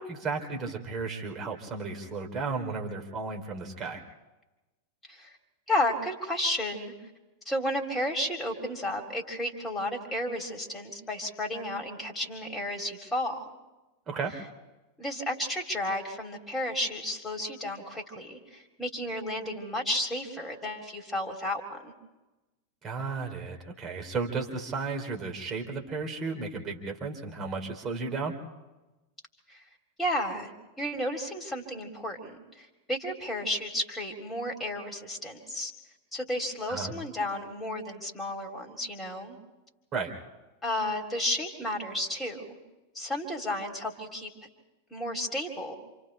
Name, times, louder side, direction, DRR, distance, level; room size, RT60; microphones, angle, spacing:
voice 1, 0.0-4.0 14.1-14.3 22.8-28.4 36.7-36.9 39.9-40.1, right 4 dB, 30° right, 2 dB, 3.5 m, -34 dB
voice 2, 5.7-6.9 7.4-13.5 15.0-21.9 29.5-29.6 30.0-30.5 30.8-35.7 36.1-39.4 40.6-42.5 42.9-44.3 44.9-45.8, left 1 dB, 10° left, 1 dB, 3.2 m, -32 dB
28.0 x 27.5 x 3.4 m, 1.1 s
figure-of-eight pair, 90°, 0 cm